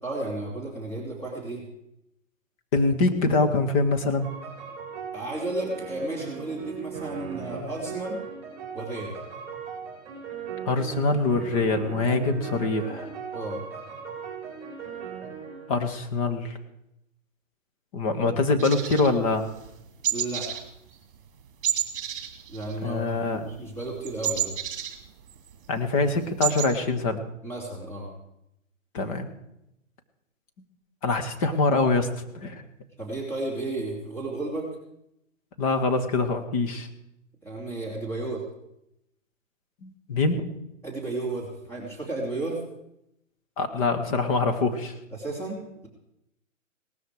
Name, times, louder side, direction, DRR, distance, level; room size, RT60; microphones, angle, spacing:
voice 1, 0.0-1.6 5.1-8.2 8.7-9.2 13.3-13.6 20.1-20.6 22.5-24.5 27.4-28.1 33.0-34.7 37.4-38.4 40.8-42.6 45.1-45.9, right 2 dB, 5° left, -3 dB, 3.0 m, -33 dB
voice 2, 2.7-4.3 10.6-13.1 15.7-16.6 17.9-19.5 22.8-23.5 25.7-27.2 28.9-29.3 31.0-32.6 35.6-36.9 39.8-40.4 43.6-44.9, left 3 dB, 25° left, 7 dB, 1.4 m, -24 dB
sound 1, 4.2-15.7, right 6 dB, 15° right, 5.6 m, -38 dB
sound 2, 18.6-19.7 20.0-20.7 20.9-21.1 21.6-23.2 23.4-25.5 25.9-26.0 26.2-26.7, right 10 dB, 40° right, 2.4 m, -30 dB
18.5 x 13.5 x 4.9 m, 0.83 s
hypercardioid pair, 155°, 40 cm